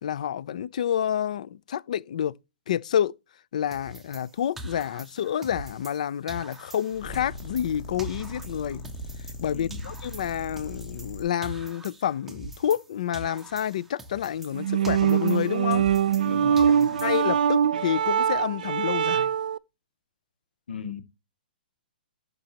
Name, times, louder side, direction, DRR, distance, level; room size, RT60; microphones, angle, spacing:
voice 1, 0.0-2.4 2.7-3.1 3.5-8.8 9.4-15.9 16.6-16.7 17.0-19.3, left 10 dB, 45° left, 0.4 m, -29 dB
sound 1, 3.7-6.0 6.3-9.4 9.7-12.9 13.1-16.3 16.6-17.4, right 1 dB, 5° right, 0.7 m, -43 dB
sound 2, 6.9-11.2, left 1 dB, 30° left, 2.4 m, -40 dB
voice 2, 9.5-9.9 16.2-17.1 20.7-21.0, left 4 dB, 75° left, 1.9 m, -37 dB
sound 3, 14.5-19.6, right 8 dB, 55° right, 0.4 m, -23 dB
11.5 x 5.3 x 2.8 m
hypercardioid pair, 175°, 5 cm